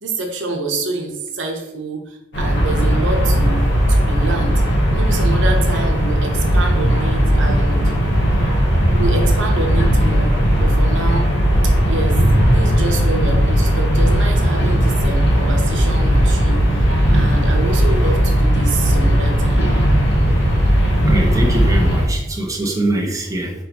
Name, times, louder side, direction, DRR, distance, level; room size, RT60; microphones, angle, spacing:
voice 1, 0.0-4.5 4.9-7.9 8.9-11.3 11.6-12.2 12.4-19.7, right 2 dB, 85° right, 2 dB, 0.9 m, -27 dB
sound 1, 2.3-22.1, equal, 65° left, 1.0 m, -16 dB
voice 2, 21.1-23.5, right 1 dB, 20° right, -1 dB, 0.8 m, -22 dB
5.6 x 3.2 x 2.9 m, 0.86 s
head